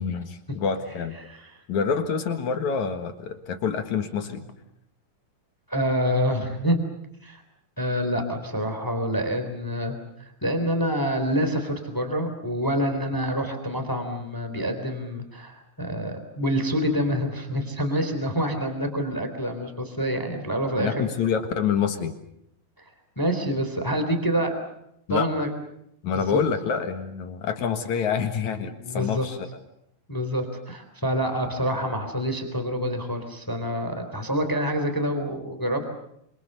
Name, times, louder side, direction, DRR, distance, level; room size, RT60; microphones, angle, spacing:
voice 1, 0.0-1.2 1.7-4.4 20.8-22.1 25.1-25.3 26.0-29.4, left 6 dB, 60° left, 8 dB, 2.8 m, -27 dB
voice 2, 5.7-6.8 7.2-7.4 7.8-21.1 23.2-24.6 25.1-25.5 26.1-26.4 28.6-29.2 30.1-35.9, equal, 5° left, 6 dB, 3.1 m, -27 dB
27.0 x 26.5 x 6.8 m, 0.75 s
omnidirectional pair, 4.2 m